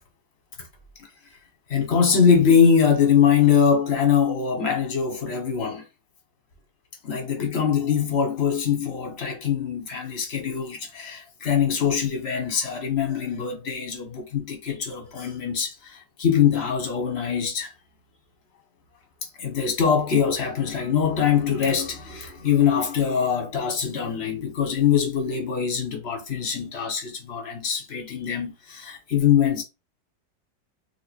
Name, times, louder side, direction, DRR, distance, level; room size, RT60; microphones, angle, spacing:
voice 1, 1.7-5.8 7.0-17.7 19.4-29.6, left 7 dB, 40° left, 1.2 m, -23 dB
2.8 x 2.6 x 4.1 m
omnidirectional pair, 1.9 m